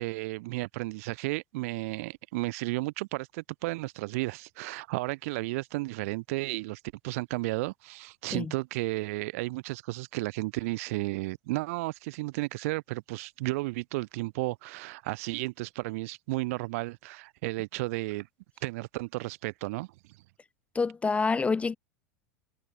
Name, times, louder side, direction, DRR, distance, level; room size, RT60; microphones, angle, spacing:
voice 1, 0.0-18.3 18.6-19.9, right 22 dB, 55° right, 0.8 m, -33 dB
voice 2, 20.8-21.8, left 4 dB, 15° left, 0.4 m, -27 dB
figure-of-eight pair, 85°, 9 cm